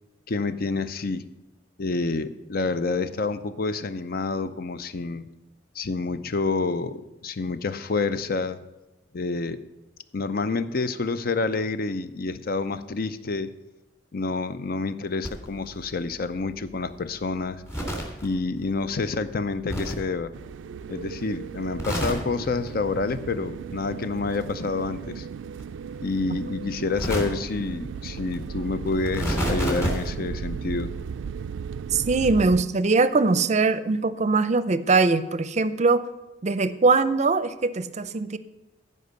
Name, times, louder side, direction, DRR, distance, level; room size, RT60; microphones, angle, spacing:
voice 1, 0.3-1.2 1.8-5.3 5.7-8.6 9.1-9.6 10.1-13.5 14.1-17.6 18.2-20.3 20.9-25.3 26.0-30.9, left 3 dB, 55° left, 13 dB, 0.6 m, -28 dB
sound 1, 15.2-21.0 21.3-22.7 23.0-24.5 24.7-30.1, equal, 15° left, 3.1 m, -34 dB
sound 2, 20.3-32.6, right 6 dB, 90° right, 0.3 m, -36 dB
voice 2, 31.9-36.0 36.4-38.4, right 3 dB, 40° right, 13 dB, 0.5 m, -21 dB
14.5 x 5.4 x 6.7 m, 1.1 s
head